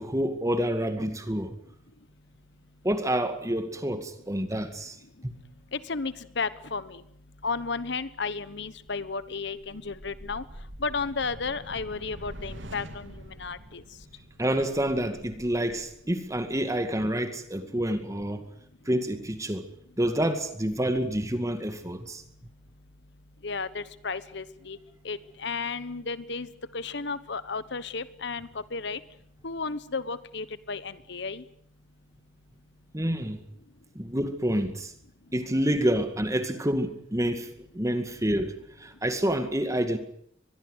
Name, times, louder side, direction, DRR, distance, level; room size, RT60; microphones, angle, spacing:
voice 1, 0.0-1.5 2.8-5.0 5.2-5.4 14.4-18.5 18.9-19.6 20.0-22.2 32.9-33.4 34.0-34.9 35.3-40.0, right 1 dB, 15° right, 2.1 m, -28 dB
voice 2, 5.7-7.0 7.4-10.4 10.8-13.8 23.4-24.8 25.0-29.0 29.4-31.4, left 4 dB, 65° left, 1.2 m, -33 dB
sound 1, 8.7-17.1, equal, 70° right, 3.7 m, -46 dB
24.5 x 21.5 x 8.1 m
head